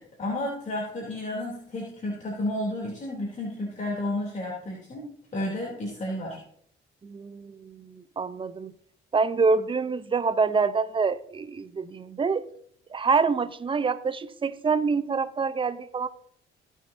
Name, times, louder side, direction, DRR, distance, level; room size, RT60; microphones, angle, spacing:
voice 1, 0.0-6.4, left 1 dB, 40° left, 3.0 m, -32 dB
voice 2, 7.0-8.7 9.1-12.5 12.9-16.1, right 4 dB, 25° right, 0.6 m, -26 dB
18.0 x 6.4 x 2.7 m
cardioid pair, 90°, 20 cm